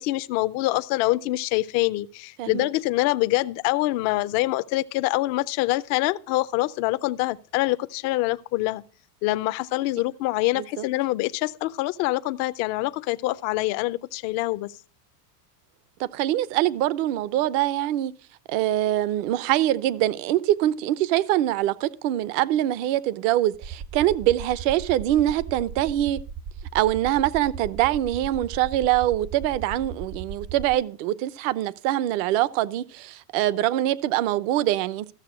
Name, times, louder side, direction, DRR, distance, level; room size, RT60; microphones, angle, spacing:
voice 1, 0.0-8.8 9.2-14.7, left 18 dB, 35° left, 0.5 m, -25 dB
voice 2, 16.0-18.1 18.5-26.2 26.7-35.1, right 13 dB, 50° right, 0.8 m, -24 dB
sound 1, 23.5-30.7, right 6 dB, 25° right, 0.5 m, -37 dB
14.0 x 6.7 x 6.1 m
supercardioid pair, 140°, 48 cm